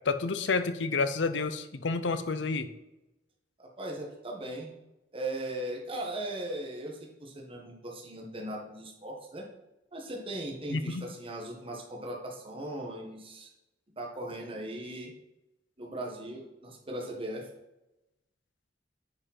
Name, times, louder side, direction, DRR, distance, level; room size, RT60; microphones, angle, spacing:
voice 1, 0.0-2.7 10.7-11.0, left 4 dB, 75° left, 11 dB, 0.7 m, -29 dB
voice 2, 3.6-4.7 5.1-9.4 9.9-13.5 14.0-15.1 15.8-17.5, right 1 dB, 30° right, -1 dB, 1.5 m, -38 dB
9.5 x 5.2 x 4.3 m, 0.97 s
head